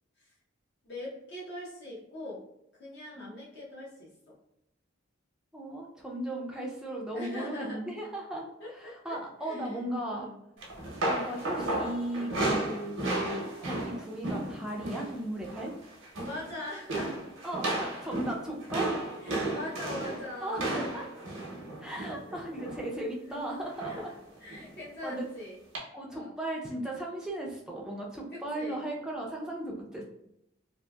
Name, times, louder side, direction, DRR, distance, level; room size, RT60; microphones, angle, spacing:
voice 1, 0.8-2.4 2.7-4.3 7.1-7.8 8.6-9.8 10.1-10.4 12.3-12.6 16.2-17.2 19.2-20.8 22.0-22.6 23.2-23.6 23.8-24.1 24.4-25.6 26.1-26.3 28.3-28.8, left 1 dB, 55° left, -6 dB, 0.7 m, -42 dB
voice 2, 5.5-8.5 8.7-10.3 11.0-15.7 17.4-18.9 20.4-21.1 21.8-24.1 25.0-25.3 25.9-30.0, right 1 dB, 5° right, -2 dB, 0.3 m, -36 dB
sound 1, 10.6-15.2 15.4-15.7 16.0-16.5 16.9-22.9 23.8-24.2 24.5-24.7 25.7-25.8, right 2 dB, 85° right, 0.7 m, -33 dB
2.7 x 2.5 x 2.2 m, 0.79 s
head